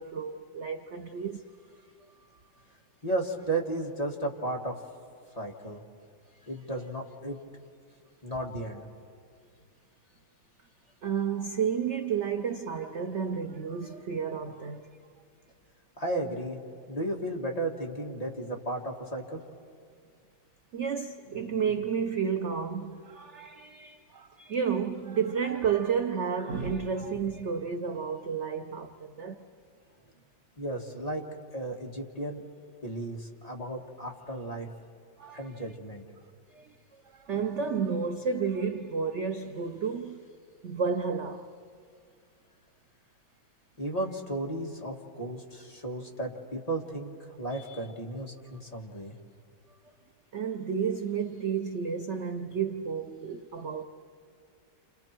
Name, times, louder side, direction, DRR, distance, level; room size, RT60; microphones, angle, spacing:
voice 1, 0.0-1.5 2.0-2.1 8.5-8.6 11.0-14.9 20.7-29.5 35.2-35.7 36.5-40.3 40.6-41.5 49.8-49.9 50.3-53.8, right 6 dB, 65° right, 0.7 m, -31 dB
voice 2, 3.0-4.7 5.3-5.8 6.5-7.4 8.2-8.9 16.0-16.6 16.9-19.4 30.6-31.2 31.5-32.4 32.8-34.7 35.3-36.0 43.8-47.1 47.4-49.1, right 1 dB, 20° left, 1.6 m, -34 dB
30.0 x 28.5 x 4.5 m
omnidirectional pair, 2.1 m